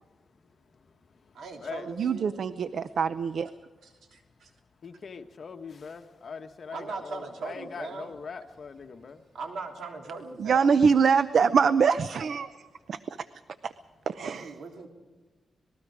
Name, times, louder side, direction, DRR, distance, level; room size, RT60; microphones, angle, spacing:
voice 1, 1.3-2.4 3.8-4.5 6.7-8.2 9.3-10.9 14.2-14.9, right 4 dB, 90° right, 2 dB, 3.4 m, -40 dB
voice 2, 2.0-3.5 10.4-12.5 12.9-13.0 13.6-13.7 14.1-14.5, right 6 dB, 65° right, 13 dB, 0.6 m, -23 dB
voice 3, 4.8-9.2, left 5 dB, 50° left, 5 dB, 1.5 m, -41 dB
26.0 x 20.0 x 5.0 m, 1.3 s
cardioid pair, 105°, 0 cm